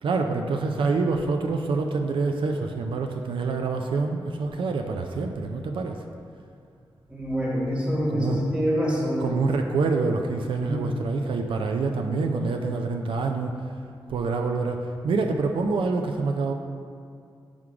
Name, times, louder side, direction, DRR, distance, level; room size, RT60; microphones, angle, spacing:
voice 1, 0.0-6.0 8.1-8.4 9.2-13.7 14.1-16.5, right 4 dB, 85° right, 3 dB, 0.4 m, -26 dB
voice 2, 7.1-9.5 10.6-10.8, equal, 15° right, -4 dB, 1.5 m, -26 dB
6.1 x 3.6 x 4.8 m, 2.3 s
wide cardioid pair, 105°, 9 cm